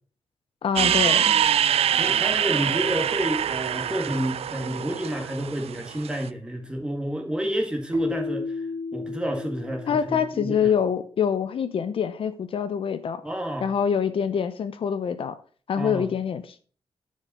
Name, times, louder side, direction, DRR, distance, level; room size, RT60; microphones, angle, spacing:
voice 1, 0.6-1.3 9.9-13.2 13.6-15.4 15.7-16.6, left 7 dB, 60° left, 0.7 m, -25 dB
sound 1, 0.8-6.2, right 9 dB, 75° right, 0.4 m, -24 dB
voice 2, 2.0-8.6 8.9-10.7 13.2-13.7 15.8-16.1, equal, 10° right, 1.8 m, -29 dB
Keyboard (musical), 7.9-10.8, left 2 dB, 25° right, 1.8 m, -33 dB
9.8 x 5.4 x 5.5 m
wide cardioid pair, 150°, 10 cm